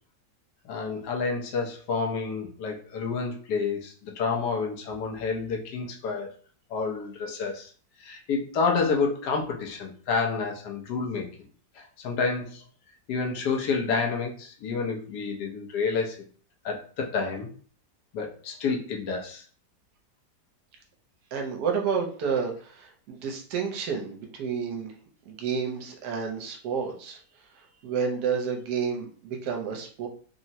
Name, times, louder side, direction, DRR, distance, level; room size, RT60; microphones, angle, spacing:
voice 1, 0.7-6.3 6.7-7.7 8.0-11.3 11.8-12.6 13.1-16.2 16.6-17.5 18.1-19.4, left 4 dB, 70° left, 1 dB, 1.2 m, -29 dB
voice 2, 21.3-24.9 25.3-27.2 27.8-30.1, right 6 dB, 75° right, 2 dB, 1.2 m, -30 dB
3.5 x 2.0 x 2.7 m, 0.43 s
omnidirectional pair, 1.9 m